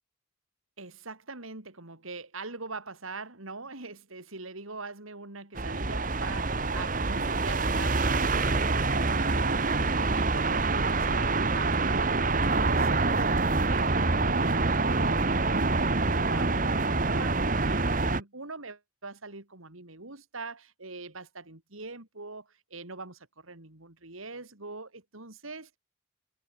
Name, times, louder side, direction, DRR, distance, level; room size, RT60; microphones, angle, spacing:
voice 1, 0.8-25.8, right 3 dB, 85° right, 3.6 m, -43 dB
sound 1, 5.5-18.2, right 3 dB, 40° right, 1.4 m, -26 dB
head